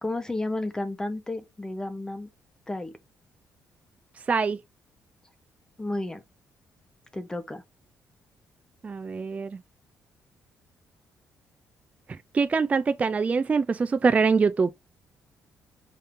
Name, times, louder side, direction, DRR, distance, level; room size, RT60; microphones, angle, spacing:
voice 1, 0.0-2.3 2.7-2.9 5.8-6.2 7.1-7.6, left 2 dB, 15° left, 0.8 m, -32 dB
voice 2, 4.3-4.6 8.8-9.6 12.1-14.7, right 5 dB, 25° right, 0.4 m, -24 dB
5.1 x 2.7 x 3.6 m
cardioid pair, 110°, 5 cm